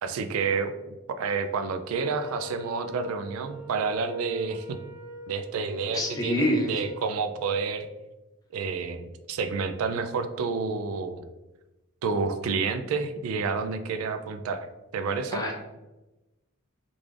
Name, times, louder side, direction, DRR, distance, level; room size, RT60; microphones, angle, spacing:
voice 1, 0.0-4.8 5.3-7.9 8.5-11.3 12.0-14.7 14.9-15.4, right 5 dB, 80° right, 9 dB, 0.3 m, -29 dB
Wind instrument woodwind instrument, 1.9-7.1, left 1 dB, 55° right, 1.5 m, -42 dB
voice 2, 5.9-6.7 15.3-15.6, equal, 20° left, -1 dB, 0.6 m, -26 dB
3.7 x 2.4 x 3.2 m, 1.0 s
head